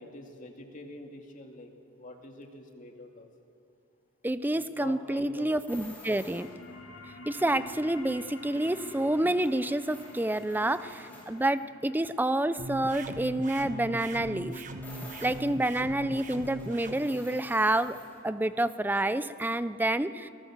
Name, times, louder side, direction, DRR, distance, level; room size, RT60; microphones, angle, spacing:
voice 1, 0.0-1.7 2.0-3.3 4.5-5.5, left 1 dB, 40° left, 3 dB, 2.3 m, -45 dB
voice 2, 4.2-6.5 7.3-14.6 15.2-18.0 18.2-20.3, right 1 dB, 10° right, 13 dB, 0.6 m, -28 dB
sound 1, 5.7-6.8 7.4-11.6 14.8-18.2 18.6-18.7, left 1 dB, 10° left, 6.3 m, -51 dB
sound 2, 6.0-17.1, left 2 dB, 65° left, 3.2 m, -51 dB
sound 3, 12.6-17.0, right 1 dB, 40° right, 1.6 m, -39 dB
26.5 x 19.0 x 7.4 m, 2.5 s
head